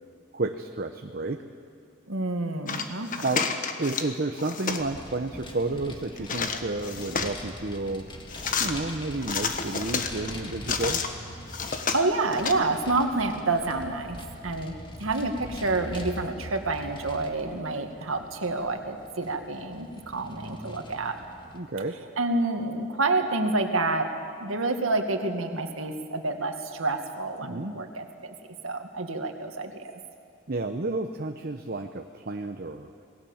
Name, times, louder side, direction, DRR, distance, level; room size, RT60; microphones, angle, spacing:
voice 1, 0.3-1.4 3.2-3.4 3.8-8.1 8.6-11.0 21.5-22.0 27.4-27.7 30.5-32.9, right 2 dB, 45° right, 5 dB, 0.9 m, -31 dB
voice 2, 2.1-3.3 11.9-21.2 22.2-24.1 24.4-28.3 28.6-29.9, right 2 dB, 80° right, 5 dB, 2.0 m, -28 dB
sound 1, 2.7-4.1 4.4-4.9 6.2-7.4 8.3-8.7 9.2-11.1 11.5-12.5, left 5 dB, 40° left, 1.4 m, -30 dB
Vehicle, 4.7-21.6, equal, 25° left, 2.0 m, -43 dB
27.5 x 19.5 x 7.3 m, 2.3 s
head